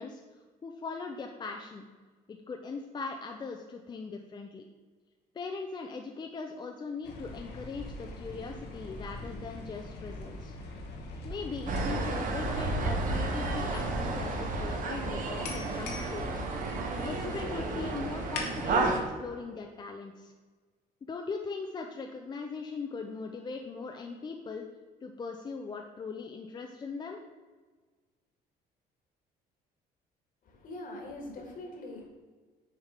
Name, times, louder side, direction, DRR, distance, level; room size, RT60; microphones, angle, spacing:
voice 1, 0.0-1.8 2.3-4.6 5.3-10.5 11.2-16.4 17.0-20.3 21.1-24.6 25.0-27.2, left 4 dB, 25° left, 3 dB, 0.4 m, -40 dB
sound 1, 7.0-18.4, left 1 dB, 80° left, 1.1 m, -40 dB
sound 2, 11.7-19.0, right 3 dB, 50° right, 1.0 m, -32 dB
voice 2, 30.4-32.1, left 1 dB, 55° left, 1 dB, 1.6 m, -42 dB
6.4 x 3.5 x 4.9 m, 1.4 s
cardioid pair, 110°, 17 cm